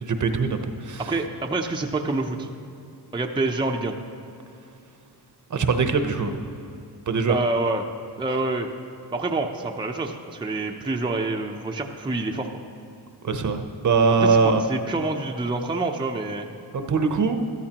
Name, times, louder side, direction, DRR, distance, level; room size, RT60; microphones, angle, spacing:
voice 1, 0.0-1.1 5.5-6.4 7.1-7.4 13.2-14.6 16.7-17.4, right 4 dB, 45° right, 7 dB, 0.9 m, -22 dB
voice 2, 1.0-2.5 3.1-4.0 7.3-7.9 8.2-8.7 9.1-12.5 14.2-16.5, right 2 dB, 10° right, 2 dB, 0.7 m, -27 dB
13.5 x 13.5 x 3.0 m, 2.6 s
cardioid pair, 80°, 41 cm